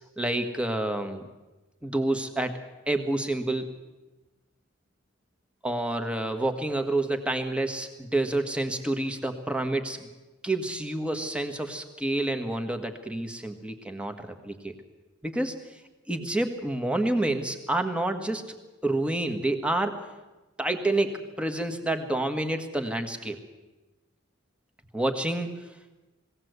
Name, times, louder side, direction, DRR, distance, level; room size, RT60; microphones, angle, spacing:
voice 1, 0.2-1.3 1.8-2.6 2.9-3.7 5.6-10.1 10.4-14.7 15.2-15.6 16.1-18.5 18.8-20.0 20.6-23.4 24.9-25.5, right 1 dB, 5° right, 6 dB, 1.6 m, -28 dB
21.0 x 17.0 x 8.1 m, 1.1 s
head